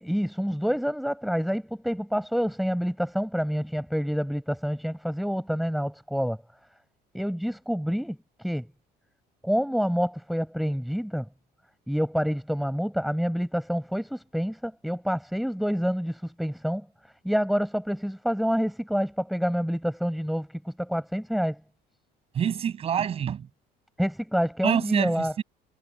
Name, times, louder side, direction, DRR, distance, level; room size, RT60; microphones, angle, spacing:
voice 1, 0.0-6.4 7.1-8.2 8.4-8.7 9.4-11.2 11.9-16.8 17.2-21.6 24.0-25.3, equal, ahead, 6.9 m, -27 dB
voice 2, 22.3-23.5 24.6-25.4, right 8 dB, 35° right, 7.5 m, -26 dB
cardioid pair, 155°, 17 cm